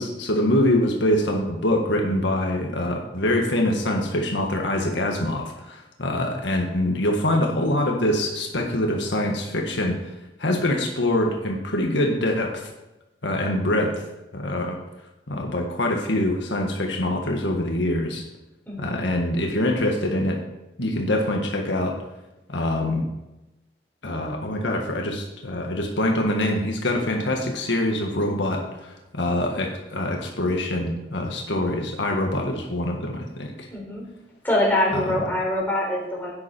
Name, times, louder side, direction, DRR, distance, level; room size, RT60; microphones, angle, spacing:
voice 1, 0.0-10.0 10.4-12.7 13.2-14.0 14.3-14.8 15.3-18.2 18.8-20.4 20.8-22.0 22.5-23.1 24.0-33.7 34.9-35.2, left 1 dB, 80° left, 1 dB, 1.7 m, -24 dB
voice 2, 18.7-19.0 33.7-34.0 34.4-36.3, left 1 dB, 10° left, -4 dB, 3.9 m, -24 dB
11.5 x 9.6 x 4.5 m, 0.95 s
head